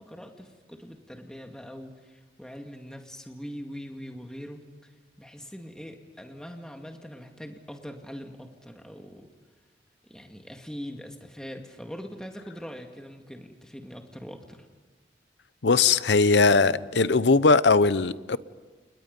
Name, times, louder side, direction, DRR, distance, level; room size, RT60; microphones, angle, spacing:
voice 1, 0.0-4.9 5.2-9.3 10.0-14.7, equal, 5° left, 3 dB, 2.1 m, -42 dB
voice 2, 15.6-18.4, left 4 dB, 85° left, 16 dB, 0.8 m, -20 dB
30.0 x 30.0 x 5.4 m, 1.3 s
head